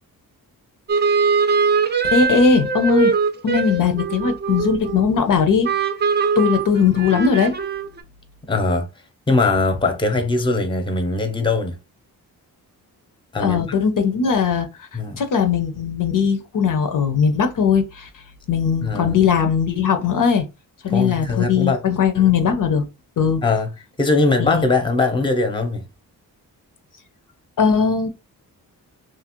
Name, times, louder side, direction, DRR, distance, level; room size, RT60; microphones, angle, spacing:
sound 1, 0.9-5.3 5.6-8.0, right 5 dB, 25° right, 0.6 m, -21 dB
voice 1, 2.0-3.1 3.4-5.7 6.4-7.5 13.4-14.9 15.2-18.1 18.5-20.5 20.8-22.8 23.2-23.4 24.4-24.6 27.6-28.1, left 6 dB, 55° left, 0.6 m, -19 dB
voice 2, 8.5-8.9 9.3-11.8 13.3-13.6 14.9-15.2 18.8-19.2 20.9-21.8 23.4-23.7 24.0-25.9, left 3 dB, 15° left, 0.8 m, -20 dB
2.8 x 2.5 x 2.9 m
cardioid pair, 70°, 38 cm